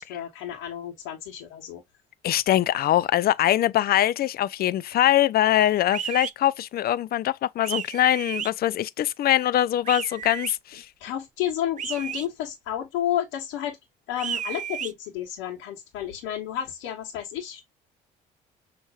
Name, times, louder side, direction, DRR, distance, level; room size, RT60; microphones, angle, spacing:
voice 1, 0.0-1.8 10.7-13.8 14.1-17.6, left 11 dB, 80° left, 1.3 m, -31 dB
voice 2, 2.2-10.8, left 12 dB, 55° left, 0.5 m, -23 dB
sound 1, 5.9-6.3 7.6-8.5 9.9-10.5 11.8-12.3 14.2-14.9, right 9 dB, 40° right, 0.5 m, -33 dB
6.3 x 3.0 x 2.3 m
hypercardioid pair, 60°, 19 cm